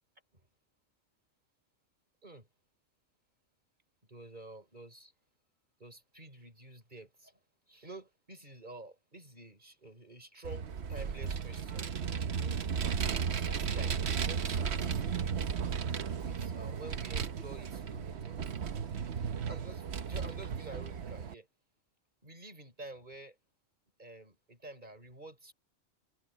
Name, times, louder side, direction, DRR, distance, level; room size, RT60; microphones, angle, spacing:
voice 1, 4.1-5.1 5.8-7.4 7.7-11.9 12.4-12.6 13.2-15.4 16.2-18.4 19.5-21.5 22.2-23.4 24.0-25.5, right 2 dB, 35° right, 6.0 m, -49 dB
Vehicle, 10.4-21.3, right 6 dB, 60° right, 1.1 m, -35 dB
omnidirectional pair, 1.3 m